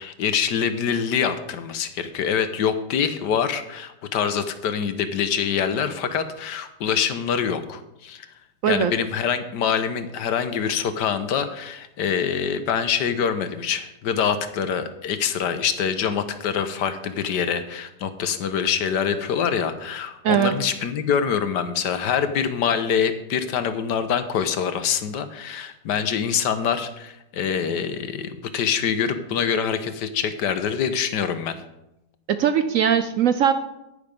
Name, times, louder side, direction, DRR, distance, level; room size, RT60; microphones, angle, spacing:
voice 1, 0.0-8.3 8.7-31.5, left 7 dB, 75° left, 10 dB, 1.4 m, -25 dB
voice 2, 20.2-20.6 32.3-33.5, right 8 dB, 70° right, 10 dB, 0.8 m, -20 dB
10.0 x 9.6 x 5.2 m, 0.88 s
omnidirectional pair, 1.9 m